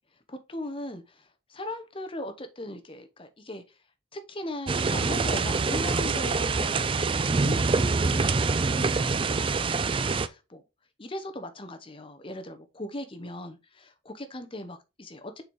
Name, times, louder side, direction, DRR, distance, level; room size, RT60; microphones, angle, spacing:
voice 1, 0.3-3.6 4.1-8.9 9.8-10.6 11.0-15.4, left 1 dB, 25° left, 0.8 m, -39 dB
sound 1, 4.7-10.3, right 4 dB, 25° right, 0.4 m, -25 dB
6.6 x 4.6 x 3.5 m
head